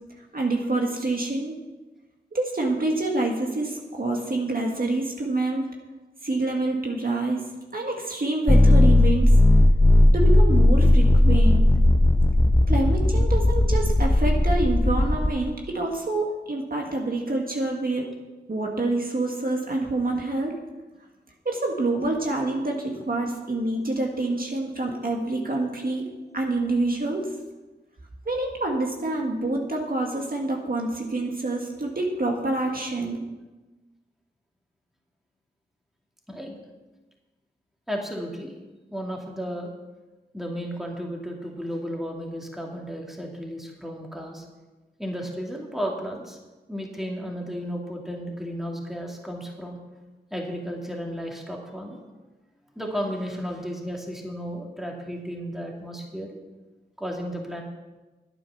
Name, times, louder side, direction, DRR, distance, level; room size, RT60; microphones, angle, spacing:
voice 1, 0.3-1.6 2.3-5.7 6.2-7.4 7.7-9.3 10.1-11.7 12.7-18.1 18.5-20.5 21.5-26.0 26.3-27.3 28.3-33.2, right 2 dB, 55° right, 0 dB, 1.8 m, -27 dB
sound 1, 8.5-15.3, left 1 dB, 20° left, 0.9 m, -17 dB
voice 2, 36.3-36.6 37.9-38.5 38.9-39.7 40.3-44.4 45.0-46.4 46.7-49.8 50.3-52.0 52.8-56.3 57.0-57.6, equal, ahead, -1 dB, 2.5 m, -33 dB
11.0 x 8.9 x 5.8 m, 1.1 s
wide cardioid pair, 55°, 18 cm